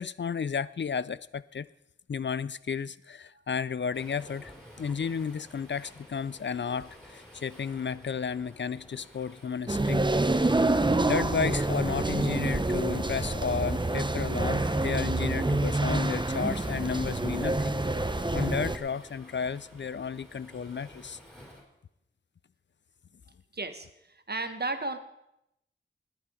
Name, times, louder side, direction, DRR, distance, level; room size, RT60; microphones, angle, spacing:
voice 1, 0.0-1.7 2.1-4.5 4.8-10.1 10.4-10.5 11.1-17.8 18.3-21.2, left 6 dB, 60° left, 18 dB, 0.4 m, -33 dB
Waves surf, 3.9-21.6, equal, ahead, 4.9 m, -52 dB
sound 1, 9.7-18.8, right 2 dB, 20° right, 0.9 m, -27 dB
voice 2, 23.5-25.0, right 2 dB, 50° right, 9 dB, 1.2 m, -34 dB
20.0 x 8.5 x 5.0 m, 0.84 s
wide cardioid pair, 50°, 21 cm